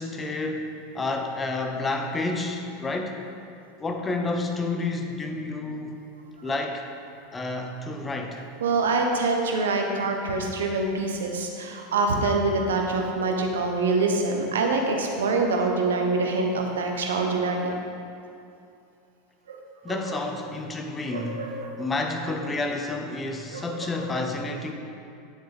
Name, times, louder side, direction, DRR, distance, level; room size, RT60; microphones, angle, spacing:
voice 1, 0.0-3.2 3.8-5.9 6.4-6.8 7.3-8.4 19.8-21.5 21.8-24.7, left 2 dB, 20° left, 4 dB, 1.0 m, -30 dB
voice 2, 8.6-17.7 19.5-19.6 19.9-20.0 21.1-21.7 23.5-24.1, right 3 dB, 75° right, 2 dB, 1.0 m, -25 dB
9.5 x 7.4 x 3.6 m, 2.6 s
hypercardioid pair, 85°, 0 cm